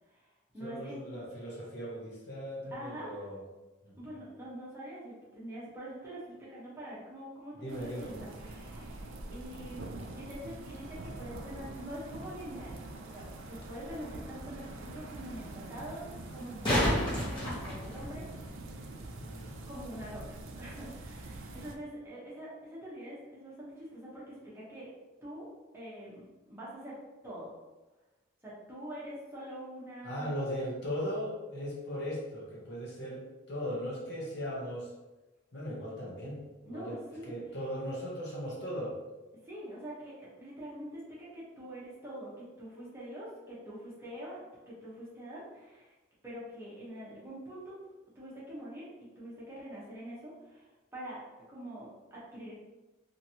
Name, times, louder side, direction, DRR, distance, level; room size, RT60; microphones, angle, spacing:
voice 1, 0.0-1.2 2.7-3.2 4.0-6.2 6.5-12.8 13.1-18.8 19.7-24.9 25.2-25.4 25.7-26.9 27.2-27.5 28.4-30.3 36.6-37.4 39.3-44.4 44.7-45.9 46.2-47.7 48.1-48.8 49.2-51.2 51.5-52.5, equal, 10° right, -8 dB, 0.9 m, -45 dB
voice 2, 0.6-3.4 3.8-4.2 7.5-8.2 19.2-19.6 30.0-34.9 35.5-37.0 37.2-39.0, equal, 55° left, -4 dB, 0.8 m, -38 dB
sound 1, 7.7-21.8, right 2 dB, 70° right, 0.4 m, -45 dB
sound 2, 13.4-13.5 16.3-18.4 21.3-21.4, equal, 20° left, 0.9 m, -30 dB
2.9 x 2.6 x 2.7 m, 1.1 s
head